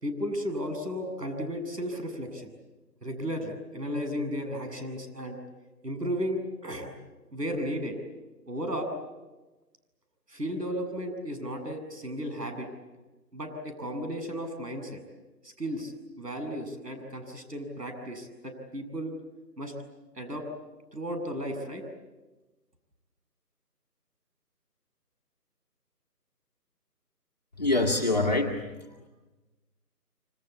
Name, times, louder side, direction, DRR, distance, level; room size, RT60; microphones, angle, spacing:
voice 1, 0.0-2.5 3.0-5.4 5.8-6.9 7.3-7.9 8.5-9.0 10.3-12.7 13.3-15.0 15.4-19.1 19.6-19.7 20.1-20.5 20.9-21.8, equal, 75° right, 6 dB, 7.8 m, -34 dB
voice 2, 27.6-28.6, left 2 dB, 25° left, -2 dB, 1.9 m, -24 dB
27.0 x 26.0 x 8.4 m, 1.1 s
figure-of-eight pair, 175°, 49 cm